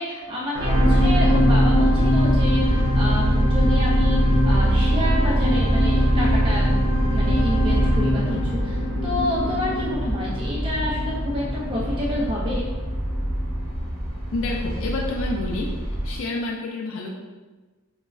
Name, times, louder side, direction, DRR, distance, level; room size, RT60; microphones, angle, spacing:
voice 1, 0.0-6.7 7.1-12.6, equal, 25° right, -6 dB, 0.3 m, -29 dB
sound 1, 0.5-12.9 13.5-13.6, equal, 80° right, 0.6 m, -21 dB
sound 2, 1.4-16.2, equal, 10° right, 0.9 m, -29 dB
voice 2, 14.3-15.7 16.0-17.1, left 2 dB, 65° left, -1 dB, 0.3 m, -28 dB
3.1 x 2.2 x 2.3 m, 1.3 s
head